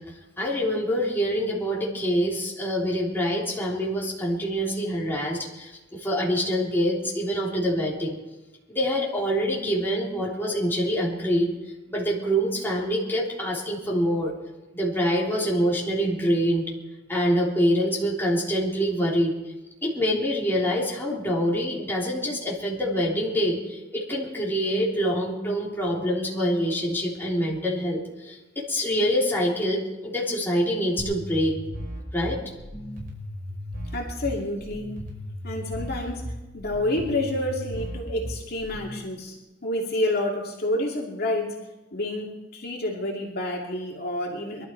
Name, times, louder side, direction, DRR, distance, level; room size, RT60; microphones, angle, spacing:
voice 1, 0.4-8.2 8.7-11.5 11.9-14.3 14.7-16.6 17.1-19.3 19.8-31.5 32.1-32.4, equal, 10° left, -4 dB, 3.5 m, -25 dB
sound 1, 31.0-39.0, equal, 50° right, 5.3 m, -36 dB
voice 2, 33.9-34.9 35.4-39.4 39.6-41.6 41.9-44.7, left 1 dB, 55° left, -1 dB, 2.6 m, -29 dB
23.0 x 12.5 x 4.7 m, 1.1 s
head